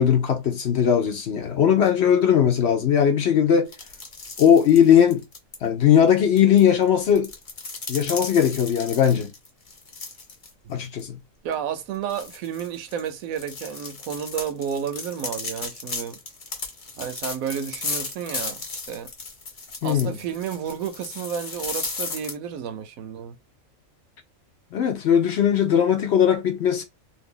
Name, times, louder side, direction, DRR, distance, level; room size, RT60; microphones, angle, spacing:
voice 1, 0.0-3.7 4.4-5.2 5.6-7.3 7.9-9.3 10.7-11.2 19.8-20.2 24.7-26.8, left 8 dB, 60° left, 0.8 m, -19 dB
sound 1, 3.7-5.5 6.4-10.5 10.8-11.0 11.5-11.6 12.1-22.3, left 3 dB, 40° left, 1.0 m, -35 dB
voice 2, 11.4-16.2 17.0-19.1 19.8-23.4, right 8 dB, 80° right, 1.0 m, -31 dB
2.7 x 2.5 x 3.6 m
omnidirectional pair, 1.5 m